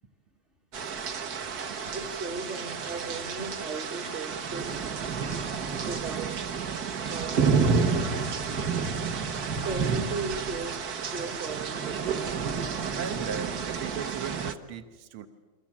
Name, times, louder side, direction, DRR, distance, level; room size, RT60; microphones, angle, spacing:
sound 1, 0.7-14.5, right 5 dB, 50° right, 1.5 m, -30 dB
voice 1, 1.9-4.9 5.8-6.5 7.0-8.2 9.6-12.2, right 3 dB, 30° right, 1.4 m, -37 dB
voice 2, 13.0-15.3, right 7 dB, 75° right, 2.1 m, -38 dB
29.0 x 24.5 x 7.4 m
omnidirectional pair, 2.4 m